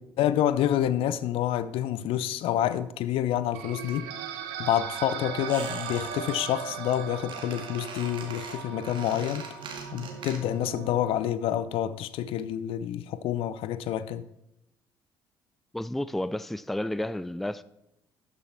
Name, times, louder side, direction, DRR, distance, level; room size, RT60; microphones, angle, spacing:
voice 1, 0.2-4.1 4.6-9.5 9.9-14.2, left 11 dB, 60° left, 0.5 m, -28 dB
sound 1, 3.5-11.2, right 8 dB, 75° right, 0.8 m, -38 dB
Squeak, 5.5-6.3 6.6-7.0 7.3-10.7 10.9-11.0, right 5 dB, 50° right, 2.0 m, -42 dB
voice 2, 15.7-17.6, left 1 dB, ahead, 0.3 m, -31 dB
12.0 x 6.9 x 4.3 m
figure-of-eight pair, 45°, 11 cm